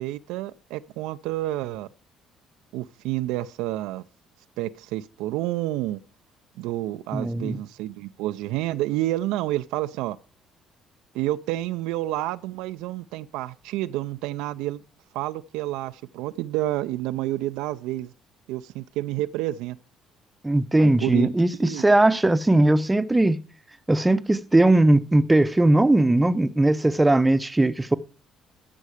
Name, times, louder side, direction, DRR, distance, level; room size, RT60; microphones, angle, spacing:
voice 1, 0.0-1.9 2.7-4.0 4.6-6.0 6.6-10.2 11.1-14.8 15.1-18.1 18.5-19.8 20.8-21.3 21.6-21.8, right 15 dB, 80° right, 0.4 m, -29 dB
voice 2, 7.1-7.6 20.4-23.4 23.9-27.9, right 1 dB, 15° right, 0.7 m, -19 dB
13.5 x 5.4 x 4.9 m
supercardioid pair, 65°, 0 cm